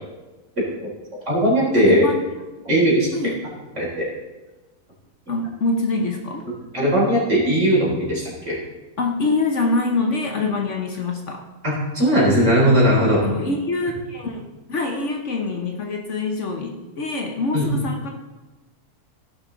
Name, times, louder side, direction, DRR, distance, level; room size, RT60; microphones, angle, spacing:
voice 1, 1.3-2.1 2.6-3.1 3.8-4.1 6.7-8.5 11.6-13.3 17.5-17.7, equal, 50° right, -6 dB, 4.2 m, -18 dB
voice 2, 1.8-2.2 2.5-2.6 3.1-3.3 5.3-6.5 9.0-11.4 13.2-18.1, left 3 dB, 55° left, 2 dB, 1.3 m, -25 dB
16.5 x 6.0 x 3.9 m, 1.1 s
omnidirectional pair, 1.6 m